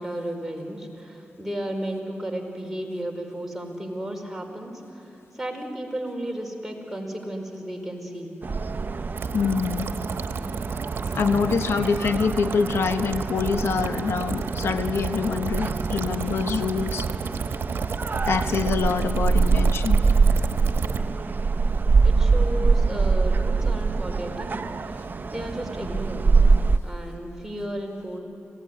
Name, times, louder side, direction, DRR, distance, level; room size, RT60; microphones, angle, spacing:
voice 1, 0.0-8.4 22.0-26.3 26.8-28.2, right 1 dB, 5° right, 1 dB, 4.6 m, -34 dB
sound 1, 8.4-26.8, right 4 dB, 50° right, 0.8 m, -24 dB
sound 2, 9.2-21.0, right 6 dB, 75° right, 1.2 m, -31 dB
voice 2, 9.3-9.9 11.1-17.1 18.3-20.0, left 5 dB, 80° left, 9 dB, 1.2 m, -25 dB
26.0 x 18.5 x 9.7 m, 2.8 s
cardioid pair, 60°, 4 cm